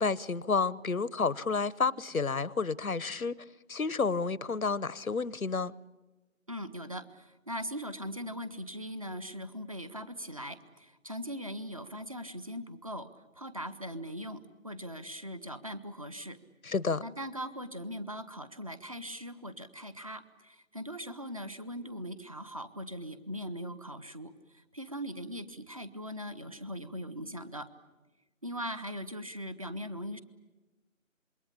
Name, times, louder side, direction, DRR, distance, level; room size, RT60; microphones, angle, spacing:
voice 1, 0.0-3.3 3.7-5.7 16.6-17.0, left 4 dB, 90° left, 0.9 m, -30 dB
voice 2, 6.5-16.4 17.0-27.7 28.4-30.2, equal, 25° right, 0.8 m, -40 dB
27.0 x 21.5 x 8.6 m
figure-of-eight pair, 155°, 41 cm